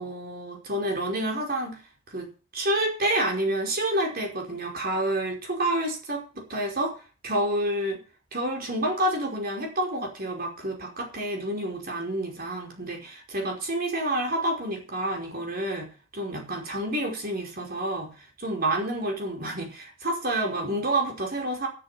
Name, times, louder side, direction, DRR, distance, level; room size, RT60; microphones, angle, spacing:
voice 1, 0.0-1.8 2.1-2.3 2.5-6.9 7.2-8.0 8.3-21.7, right 1 dB, 45° right, 2 dB, 5.1 m, -29 dB
13.0 x 8.1 x 8.5 m, 0.35 s
head